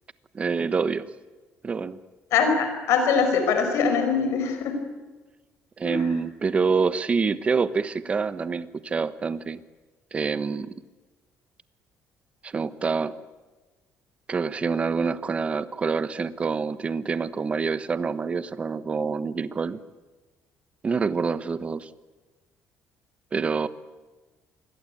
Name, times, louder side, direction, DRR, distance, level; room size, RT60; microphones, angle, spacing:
voice 1, 0.3-1.1 1.6-2.0 5.8-9.6 10.1-10.7 12.4-13.1 14.3-19.8 20.8-21.9 23.3-23.7, right 5 dB, 25° right, 14 dB, 1.0 m, -26 dB
voice 2, 2.3-4.8 5.8-6.1, left 5 dB, 75° left, 6 dB, 5.4 m, -23 dB
27.0 x 21.5 x 8.7 m, 1.2 s
cardioid pair, 150°, 5 cm